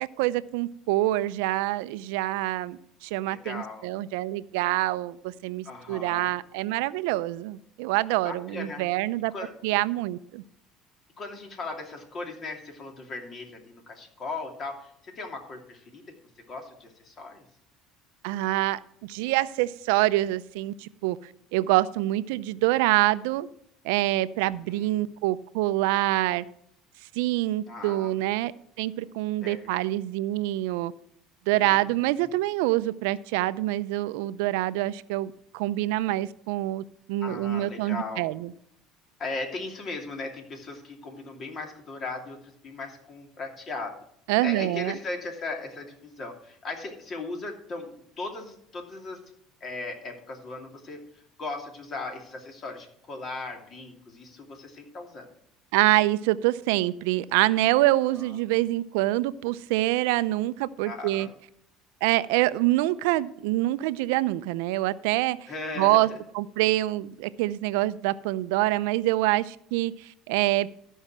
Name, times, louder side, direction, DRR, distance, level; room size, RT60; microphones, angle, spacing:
voice 1, 0.0-9.3 9.6-10.4 18.2-23.5 23.8-26.4 27.1-28.5 28.8-30.9 31.5-38.5 44.3-44.9 55.7-61.3 62.0-65.5 65.8-66.1 66.3-70.7, right 17 dB, 85° right, 15 dB, 0.5 m, -26 dB
voice 2, 3.3-3.9 5.6-6.3 8.2-8.9 9.3-9.5 11.2-16.0 16.5-17.4 24.6-25.0 27.7-28.1 29.4-29.7 31.6-31.8 32.0-32.3 37.2-38.3 39.2-43.9 44.4-49.2 49.6-51.0 51.4-55.3 58.2-58.3 60.8-61.3 65.5-66.2, left 3 dB, 40° left, 3 dB, 2.7 m, -38 dB
13.5 x 5.5 x 6.0 m, 0.72 s
supercardioid pair, 105°, 0 cm